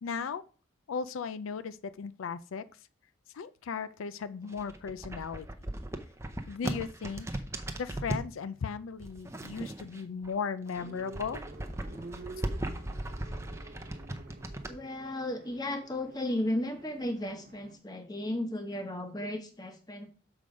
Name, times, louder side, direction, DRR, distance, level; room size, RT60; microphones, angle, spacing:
voice 1, 0.0-0.4 0.9-2.6 3.3-5.5 6.5-7.4 7.8-11.4, left 6 dB, 90° left, 0.4 m, -36 dB
sound 1, 4.4-8.3 9.0-10.3 10.6-14.7, right 1 dB, 15° right, 0.6 m, -37 dB
sound 2, 10.8-17.8, right 2 dB, 45° right, 0.8 m, -49 dB
voice 2, 14.7-20.1, left 1 dB, 20° left, 1.0 m, -34 dB
6.9 x 4.9 x 5.1 m
head